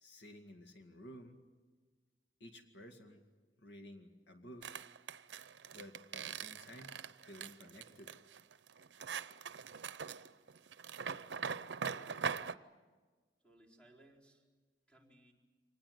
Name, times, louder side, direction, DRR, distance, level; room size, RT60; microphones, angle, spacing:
voice 1, 0.0-1.4 2.4-3.2 3.6-4.8 5.7-8.1, equal, 80° left, 5 dB, 2.1 m, -54 dB
sound 1, 4.6-12.6, right 6 dB, 80° right, 0.7 m, -42 dB
voice 2, 11.7-12.2 13.4-14.5 14.9-15.3, right 1 dB, 5° left, -1 dB, 4.2 m, -63 dB
25.5 x 19.5 x 9.4 m, 1.4 s
head